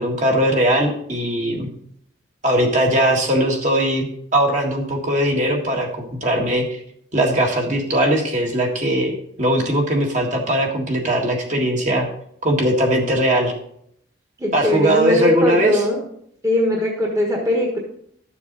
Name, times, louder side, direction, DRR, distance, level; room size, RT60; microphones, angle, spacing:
voice 1, 0.0-1.7 2.4-4.1 4.3-6.8 7.1-12.1 12.4-13.5 14.5-15.8, right 1 dB, 40° right, 1 dB, 1.8 m, -20 dB
voice 2, 14.4-16.0 16.4-17.8, left 1 dB, 15° right, -1 dB, 1.4 m, -20 dB
12.5 x 7.0 x 4.0 m, 0.69 s
head